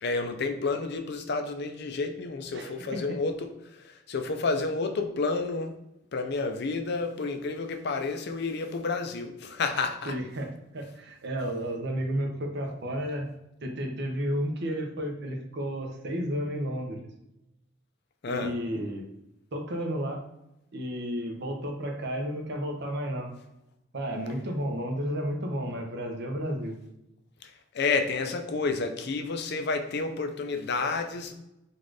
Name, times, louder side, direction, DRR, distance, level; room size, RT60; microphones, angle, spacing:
voice 1, 0.0-5.8 6.1-10.1 18.2-18.5 27.4-31.3, left 4 dB, 55° left, 6 dB, 0.5 m, -30 dB
voice 2, 2.5-3.2 10.0-13.3 13.6-17.0 18.3-19.1 19.5-20.2 20.7-23.3 23.9-26.8, equal, 60° right, 3 dB, 0.8 m, -32 dB
4.1 x 2.5 x 4.6 m, 0.87 s
head